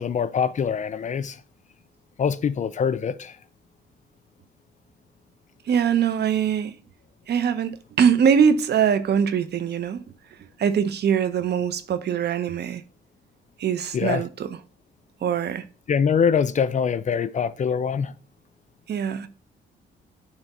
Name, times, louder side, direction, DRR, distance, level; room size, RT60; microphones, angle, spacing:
voice 1, 0.0-1.4 2.2-3.4 13.9-14.2 15.9-18.1, left 6 dB, 40° left, 0.5 m, -24 dB
voice 2, 5.7-6.8 7.3-10.0 10.6-12.8 13.6-14.5 15.2-15.6 18.9-19.3, right 7 dB, 55° right, 0.8 m, -22 dB
9.1 x 3.5 x 4.2 m
cardioid pair, 90°, 20 cm